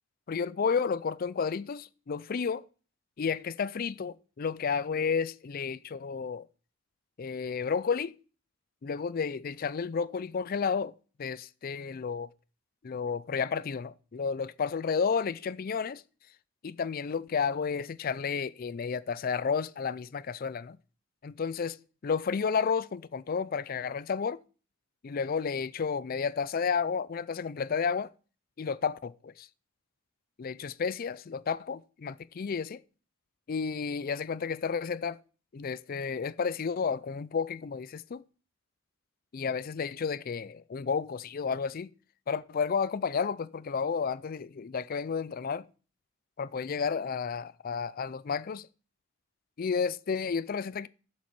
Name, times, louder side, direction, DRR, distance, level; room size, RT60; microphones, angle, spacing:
voice 1, 0.3-2.6 3.2-6.4 7.2-8.1 8.8-10.9 11.2-12.3 12.8-16.0 16.6-20.8 21.2-21.8 22.0-24.4 25.0-28.1 28.6-29.5 30.4-32.8 33.5-35.2 35.5-38.2 39.3-41.9 42.3-45.7 46.4-48.7 49.6-50.9, left 6 dB, 45° left, 0.4 m, -31 dB
7.3 x 7.1 x 6.0 m
head